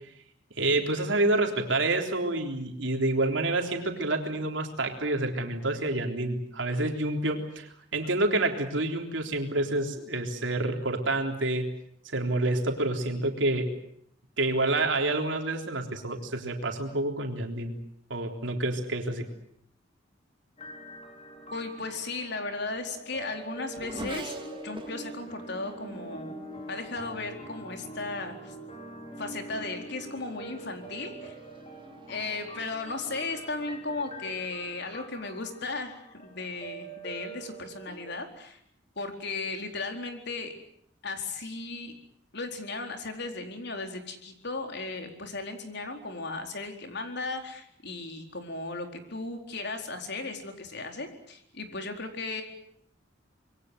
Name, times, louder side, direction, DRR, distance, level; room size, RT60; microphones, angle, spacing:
voice 1, 0.6-11.7 12.0-13.7 14.4-17.8 18.1-19.3, right 2 dB, 80° right, 3 dB, 3.7 m, -28 dB
sound 1, 20.6-38.2, right 2 dB, 35° left, 5.0 m, -44 dB
voice 2, 21.5-24.4 24.6-26.4 26.7-28.5 29.2-31.3 32.1-38.6 39.0-40.5 41.0-41.9 42.3-52.4, left 3 dB, 65° left, 5 dB, 4.3 m, -36 dB
Race car auto racing / Accelerating revving vroom, 22.1-28.0 28.8-29.2 29.6-35.5, right 1 dB, 25° right, 2.5 m, -47 dB
26.5 x 22.5 x 8.0 m, 0.68 s
head